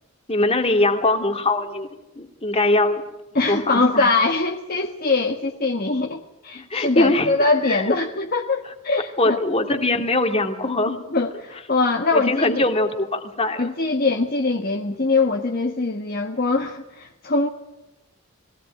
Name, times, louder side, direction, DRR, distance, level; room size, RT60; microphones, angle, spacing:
voice 1, 0.3-1.9 2.2-3.0 3.5-4.1 6.5-7.3 7.7-7.9 9.2-11.0 12.1-13.8, left 2 dB, 25° left, 5 dB, 2.4 m, -22 dB
voice 2, 3.3-9.4 11.1-12.6 13.6-17.5, left 3 dB, 45° left, 2 dB, 1.4 m, -22 dB
22.0 x 17.0 x 10.0 m, 0.97 s
head